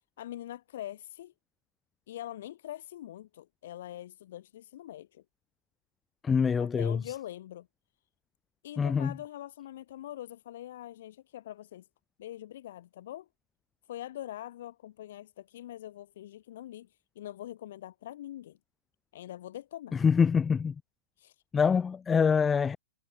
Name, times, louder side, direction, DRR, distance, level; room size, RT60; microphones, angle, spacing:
voice 1, 0.2-1.3 2.1-5.2 6.6-7.7 8.6-11.9 12.2-13.3 13.9-16.9 17.1-18.6 19.1-19.9 21.2-21.3, left 13 dB, 60° left, 3.2 m, -43 dB
voice 2, 6.2-7.0 8.8-9.1 19.9-20.7 21.5-22.8, left 6 dB, 15° left, 0.4 m, -25 dB
hypercardioid pair, 110°, 0 cm